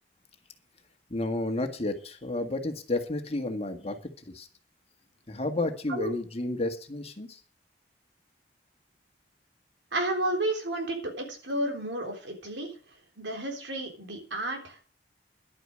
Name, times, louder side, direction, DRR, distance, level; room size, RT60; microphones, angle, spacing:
voice 1, 1.1-4.0 4.3-4.5 5.3-7.4, left 2 dB, 35° left, 6 dB, 1.7 m, -31 dB
voice 2, 9.9-12.7 13.2-14.8, right 1 dB, 85° right, 3 dB, 3.7 m, -32 dB
11.5 x 9.2 x 6.3 m, 0.39 s
head